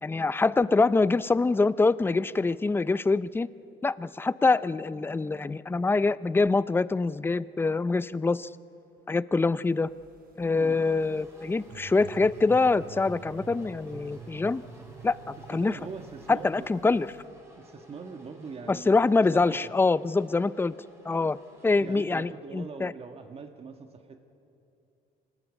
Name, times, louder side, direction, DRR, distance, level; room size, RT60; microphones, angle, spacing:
voice 1, 0.0-3.5 3.8-8.5 9.1-9.9 10.4-14.6 15.0-15.8 16.3-17.1 18.7-20.7 21.1-21.4 21.6-22.9, left 3 dB, 15° left, 17 dB, 0.5 m, -25 dB
sound 1, 9.8-17.2, right 6 dB, 60° right, 5.6 m, -48 dB
sound 2, 10.5-22.0, right 1 dB, 15° right, 4.9 m, -53 dB
voice 2, 10.5-10.8 15.5-16.8 17.6-19.7 21.8-24.2, right 5 dB, 35° right, 5 dB, 1.5 m, -43 dB
25.5 x 19.5 x 8.4 m, 2.7 s
cardioid pair, 110°, 17 cm